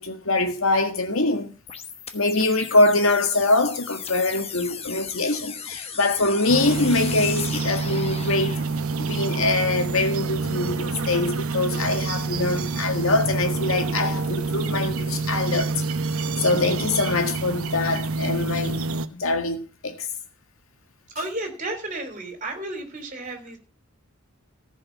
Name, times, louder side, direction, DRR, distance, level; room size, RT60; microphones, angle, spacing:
voice 1, 0.0-1.6 2.1-8.6 9.0-15.7 16.4-20.1, left 2 dB, 75° left, 1.9 m, -23 dB
sound 1, 1.7-8.7, left 6 dB, 30° left, 1.1 m, -37 dB
sound 2, 6.5-19.1, right 3 dB, 85° right, 0.9 m, -27 dB
voice 2, 21.1-23.6, right 2 dB, 35° right, 3.4 m, -32 dB
14.5 x 5.5 x 7.2 m
head